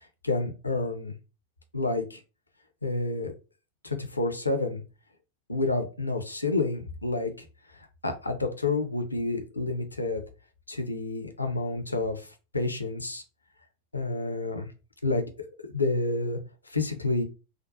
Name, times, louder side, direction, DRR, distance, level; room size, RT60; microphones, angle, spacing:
voice 1, 0.2-1.1 1.7-2.2 2.8-3.3 3.8-4.8 5.5-7.3 7.7-10.2 10.7-12.3 12.5-13.2 13.9-14.7 15.0-15.2 15.7-16.4 16.7-17.2, left 2 dB, 80° left, 6 dB, 0.5 m, -29 dB
2.5 x 2.2 x 2.5 m, 0.32 s
figure-of-eight pair, 90°, 0 cm